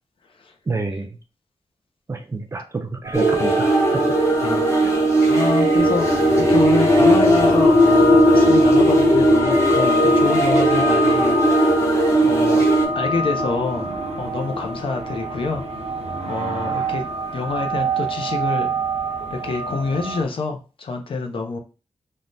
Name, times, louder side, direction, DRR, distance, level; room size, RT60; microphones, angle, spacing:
voice 1, 0.7-1.0 2.1-3.7 3.9-4.0, right 3 dB, 25° right, 5 dB, 0.4 m, -27 dB
sound 1, 3.0-20.2, right 1 dB, 75° right, 0.6 m, -28 dB
sound 2, 3.1-12.9, right 2 dB, 25° left, 0.8 m, -18 dB
voice 2, 5.3-6.1 6.5-11.7 12.2-12.7 12.9-13.9 14.2-15.6 16.3-17.0 17.3-18.7 19.3-21.6, left 4 dB, 55° left, 4 dB, 0.5 m, -26 dB
sound 3, 5.8-17.0, left 2 dB, 80° left, 0.8 m, -21 dB
3.3 x 2.1 x 2.6 m, 0.33 s
wide cardioid pair, 160°, 11 cm